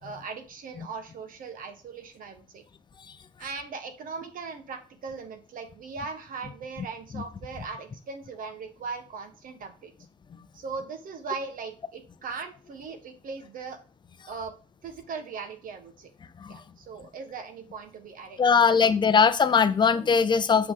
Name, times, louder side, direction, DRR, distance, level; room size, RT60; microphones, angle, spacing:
voice 1, 0.0-2.6 3.4-9.9 10.5-13.8 14.3-14.5 14.8-16.1 16.5-18.6, right 5 dB, 55° right, 7 dB, 1.4 m, -39 dB
voice 2, 18.4-20.7, left 6 dB, 25° left, 12 dB, 0.6 m, -20 dB
7.0 x 4.9 x 3.8 m, 0.38 s
cardioid pair, 110°, 17 cm